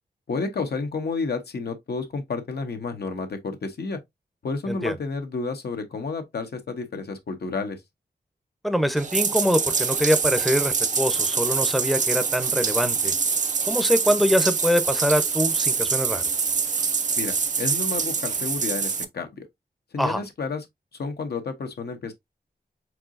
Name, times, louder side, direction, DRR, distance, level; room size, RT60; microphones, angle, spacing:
voice 1, 0.3-4.0 4.4-7.8 17.2-19.5 19.9-20.6 20.9-22.1, left 4 dB, 75° left, 1.0 m, -31 dB
voice 2, 8.6-13.1 13.7-16.2 20.0-20.2, equal, ahead, 0.7 m, -24 dB
Bathtub (filling or washing), 9.0-19.0, right 5 dB, 45° right, 0.5 m, -25 dB
4.6 x 3.7 x 2.5 m
wide cardioid pair, 105°, 17 cm